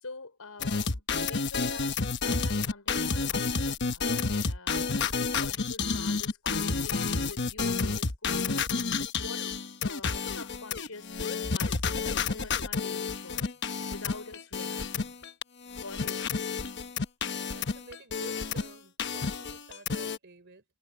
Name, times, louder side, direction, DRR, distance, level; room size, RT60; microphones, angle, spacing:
voice 1, 0.0-9.5 9.8-11.1 11.5-15.1 15.8-16.4, left 3 dB, 85° left, 5.0 m, -47 dB
sound 1, 0.6-15.4 15.7-18.7 19.0-20.2, left 4 dB, 55° left, 1.1 m, -30 dB
voice 2, 17.2-20.6, right 3 dB, 55° right, 3.7 m, -51 dB
head